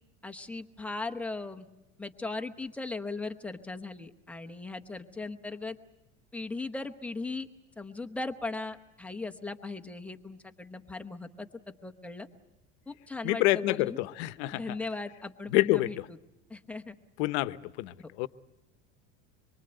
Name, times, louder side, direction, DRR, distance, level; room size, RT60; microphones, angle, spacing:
voice 1, 0.2-1.7 2.0-5.8 6.3-7.5 7.8-11.5 11.8-12.3 12.9-14.0 14.5-16.0 16.5-16.9 18.0-18.3, left 3 dB, 5° left, 0.8 m, -38 dB
voice 2, 13.2-14.6 15.5-15.9 17.2-18.3, left 18 dB, 75° left, 0.9 m, -27 dB
25.0 x 23.5 x 7.9 m
cardioid pair, 175°, 34 cm